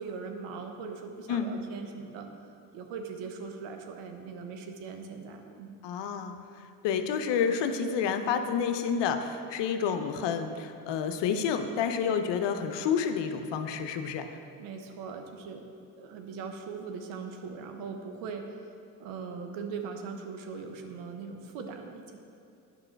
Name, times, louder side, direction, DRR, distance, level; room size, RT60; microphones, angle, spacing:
voice 1, 0.0-2.3 2.7-5.8 14.6-15.7 16.0-18.6 19.0-22.2, right 5 dB, 70° right, 4 dB, 1.1 m, -40 dB
voice 2, 5.8-6.4 6.8-14.4, left 7 dB, 55° left, 7 dB, 0.8 m, -29 dB
9.7 x 5.6 x 4.5 m, 2.5 s
hypercardioid pair, 60°, 50 cm